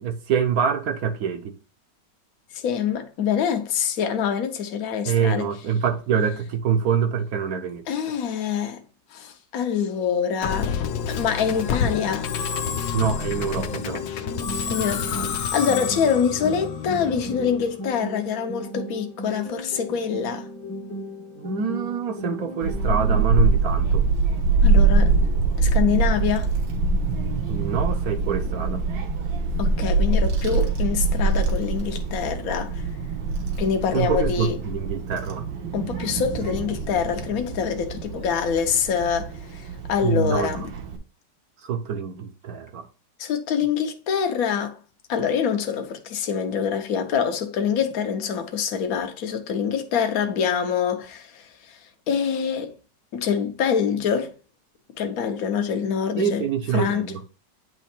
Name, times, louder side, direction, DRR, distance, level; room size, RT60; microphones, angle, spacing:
voice 1, 0.0-1.5 5.0-7.8 12.9-14.0 21.2-24.1 27.5-28.8 33.9-35.5 40.0-40.7 41.6-42.9 56.2-57.2, right 7 dB, 65° right, 1.1 m, -25 dB
voice 2, 2.5-5.5 7.9-8.8 9.1-10.7 11.1-12.3 14.7-15.1 15.5-20.5 24.6-25.1 25.6-26.5 29.6-32.7 33.6-34.6 35.7-40.7 43.2-44.7 45.1-51.4 52.1-52.7 53.1-54.3 55.0-56.4 56.7-57.0, left 7 dB, 60° left, 1.3 m, -25 dB
Musical instrument, 10.4-17.7, left 7 dB, 75° left, 1.4 m, -29 dB
sound 1, 13.4-23.4, right 1 dB, 10° left, 0.9 m, -36 dB
Child speech kid speaking / Wind, 22.6-41.0, right 3 dB, 85° right, 1.9 m, -24 dB
9.2 x 3.1 x 4.4 m
omnidirectional pair, 1.9 m